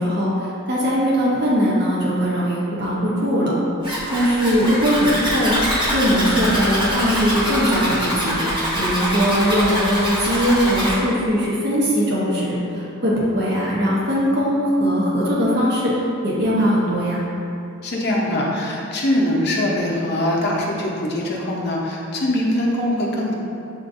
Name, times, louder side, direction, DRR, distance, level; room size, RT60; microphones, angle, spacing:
voice 1, 0.0-3.5 4.1-5.6 5.9-8.4 8.8-15.9 16.2-17.2, equal, 50° right, -6 dB, 0.7 m, -20 dB
Zipper (clothing), 3.8-11.0, equal, 20° right, 0.9 m, -24 dB
voice 2, 17.8-23.3, left 1 dB, 50° left, -2 dB, 0.6 m, -22 dB
7.3 x 2.5 x 2.5 m, 2.7 s
head